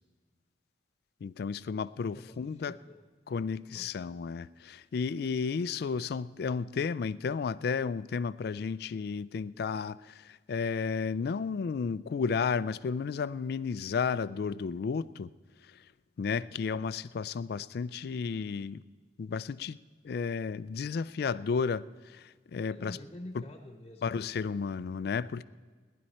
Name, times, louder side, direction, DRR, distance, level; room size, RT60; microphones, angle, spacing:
voice 1, 1.2-2.7 3.3-15.3 16.2-18.8 19.2-19.8 20.0-21.8 22.1-23.0 24.0-25.4, left 5 dB, 55° left, 17 dB, 0.3 m, -33 dB
voice 2, 2.1-3.0 3.7-4.2 22.7-24.3, left 1 dB, 30° left, 4 dB, 1.0 m, -48 dB
18.5 x 11.0 x 4.2 m, 1.5 s
head